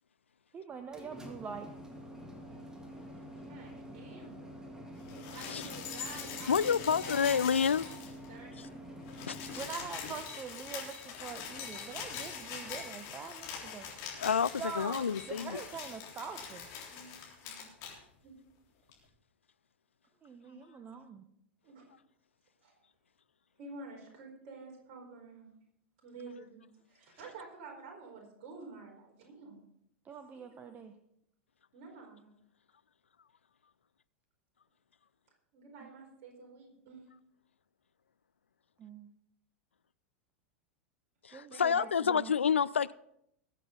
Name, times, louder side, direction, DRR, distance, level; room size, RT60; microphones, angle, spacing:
voice 1, 0.5-1.7 9.5-14.1 14.6-16.7 20.2-21.3 30.0-30.9 35.8-35.9 38.8-39.1 41.3-42.3, right 6 dB, 25° right, 8 dB, 1.0 m, -44 dB
sound 1, 0.7-9.6, equal, 10° right, 2.1 m, -47 dB
voice 2, 3.3-4.5 5.1-7.9 8.3-8.5 16.9-17.6 18.2-18.4 21.6-21.8 22.6-22.7 23.6-25.5 26.0-29.6 31.7-32.3 35.5-37.1 41.5-41.9, right 4 dB, 45° right, 0 dB, 4.5 m, -50 dB
sound 2, 5.0-8.3 8.6-8.7 8.9-17.9 18.9-19.0, left 7 dB, 45° left, 3.7 m, -43 dB
voice 3, 6.5-7.8 9.3-9.4 14.2-15.6 20.5-20.6 41.2-42.9, left 7 dB, 80° left, 19 dB, 0.4 m, -29 dB
20.5 x 7.9 x 3.9 m, 0.74 s
figure-of-eight pair, 90°, 6 cm